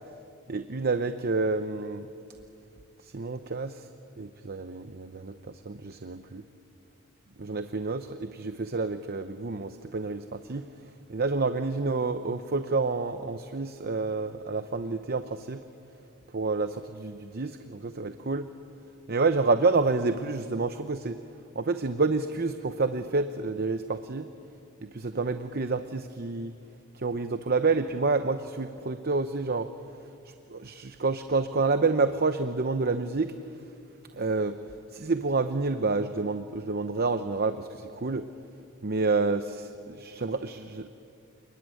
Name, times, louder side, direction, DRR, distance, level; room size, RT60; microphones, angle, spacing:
voice 1, 0.5-2.1 3.0-3.9 4.2-6.4 7.4-10.6 11.1-15.6 16.3-18.5 19.1-21.2 21.6-24.3 24.9-26.5 26.9-29.7 30.5-33.3 34.1-34.6 34.9-38.3 38.8-40.9, right 3 dB, 45° right, 9 dB, 0.8 m, -28 dB
29.0 x 20.5 x 9.2 m, 2.5 s
head